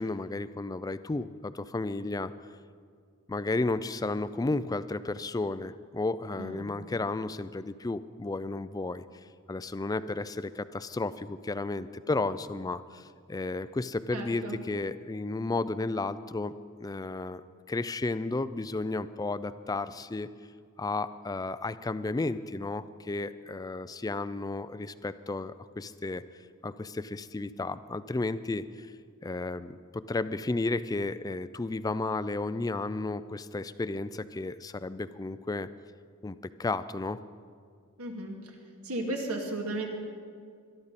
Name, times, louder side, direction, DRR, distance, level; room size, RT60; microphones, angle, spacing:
voice 1, 0.0-2.3 3.3-9.0 9.5-16.5 16.8-17.4 17.7-20.3 20.8-26.2 26.6-28.9 29.2-35.7 36.2-36.3 36.6-37.2, left 3 dB, 15° left, 14 dB, 0.3 m, -33 dB
voice 2, 14.1-14.6 38.0-38.3 38.8-39.9, right 2 dB, 85° right, 1 dB, 2.3 m, -34 dB
21.5 x 12.0 x 4.1 m, 2.1 s
head